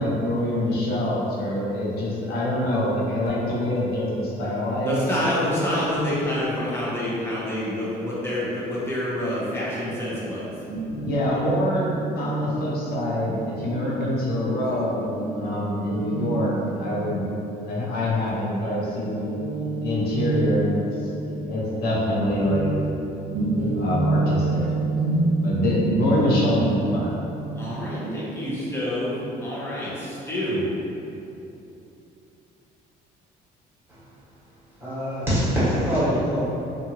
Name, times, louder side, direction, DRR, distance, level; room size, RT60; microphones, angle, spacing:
voice 1, 0.0-5.0 10.8-17.3 17.6-19.2 19.8-22.7 23.8-24.7 25.4-27.2, left 1 dB, 70° left, -5 dB, 0.8 m, -25 dB
voice 2, 4.8-10.5 27.6-30.6, left 1 dB, 15° left, -8 dB, 0.9 m, -27 dB
Guitar, 10.7-18.4 18.7-29.1, right 2 dB, 55° right, 0.4 m, -29 dB
voice 3, 34.8-36.5, equal, 15° right, -12 dB, 1.4 m, -23 dB
2.7 x 2.5 x 2.9 m, 2.8 s
cardioid pair, 110°, 17 cm